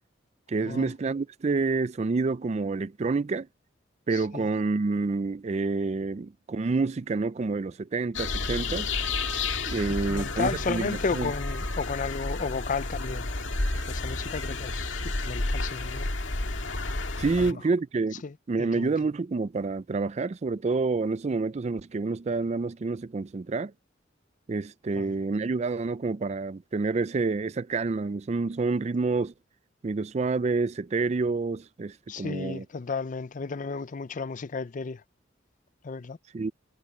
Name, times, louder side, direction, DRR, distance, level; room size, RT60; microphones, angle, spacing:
voice 1, 0.5-3.5 4.1-8.9 9.7-11.3 17.2-18.2 18.5-23.7 24.5-29.3 29.8-32.6 36.3-36.5, right 3 dB, 35° right, 0.4 m, -28 dB
voice 2, 4.1-4.5 9.9-13.3 13.9-16.1 17.4-17.5 18.2-18.9 24.9-25.1 32.1-35.0 35.8-36.2, left 4 dB, 40° left, 0.5 m, -33 dB
sound 1, 8.1-17.5, left 3 dB, 75° left, 2.0 m, -31 dB
head